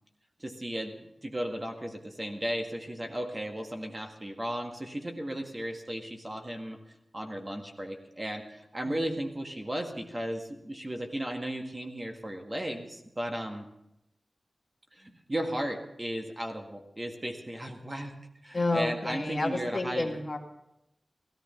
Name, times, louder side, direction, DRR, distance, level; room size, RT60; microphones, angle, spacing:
voice 1, 0.4-6.8 7.1-13.7 14.9-18.1 18.4-20.2, right 1 dB, 25° right, 3 dB, 1.8 m, -35 dB
voice 2, 18.5-20.4, left 2 dB, 35° left, 2 dB, 2.1 m, -30 dB
16.5 x 14.0 x 5.7 m, 0.84 s
wide cardioid pair, 100°, 0 cm